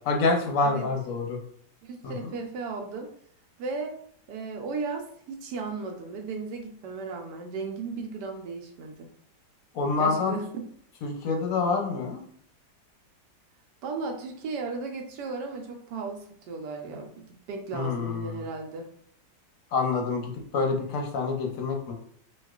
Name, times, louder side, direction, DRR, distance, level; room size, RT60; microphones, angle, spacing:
voice 1, 0.0-1.4 2.0-2.1 9.7-10.3 11.0-12.2 17.7-18.4 19.7-21.9, left 4 dB, 60° left, 1 dB, 0.9 m, -27 dB
voice 2, 1.8-3.1 3.6-4.0 4.3-9.1 10.0-10.6 13.8-18.9, right 4 dB, 70° right, 3 dB, 1.1 m, -35 dB
4.4 x 2.3 x 2.3 m, 0.64 s
omnidirectional pair, 2.0 m